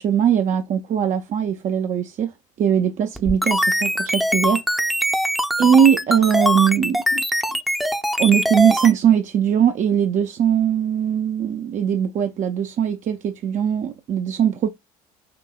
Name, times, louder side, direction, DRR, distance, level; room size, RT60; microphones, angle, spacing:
voice 1, 0.0-2.3 2.6-4.6 5.6-7.2 8.2-14.7, right 8 dB, 45° right, 0.6 m, -20 dB
sound 1, 3.2-8.9, equal, ahead, 0.7 m, -22 dB
5.7 x 2.8 x 2.3 m
hypercardioid pair, 65°, 19 cm